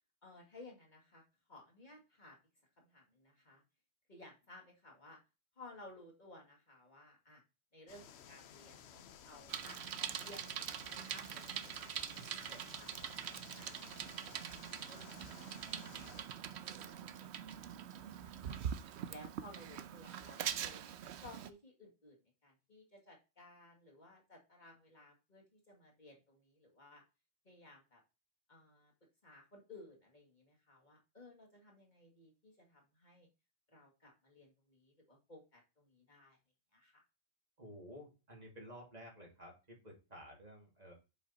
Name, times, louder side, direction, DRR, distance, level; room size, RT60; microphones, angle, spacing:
voice 1, 0.2-1.2 1.5-2.4 2.8-3.6 4.1-5.2 5.6-7.4 7.7-10.6 10.9-13.2 13.6-18.5 19.1-20.8 21.2-22.2 22.4-27.0 27.4-28.0 28.5-28.9 29.2-33.3 33.7-36.4 36.7-37.0, left 2 dB, 45° left, -1 dB, 2.1 m, -58 dB
sound 1, 7.9-16.2, left 8 dB, 75° left, 0.9 m, -57 dB
Bicycle, 9.5-21.5, right 9 dB, 80° right, 0.9 m, -43 dB
voice 2, 37.6-40.9, equal, 35° right, -1 dB, 2.6 m, -53 dB
6.8 x 5.1 x 4.1 m, 0.28 s
omnidirectional pair, 1.1 m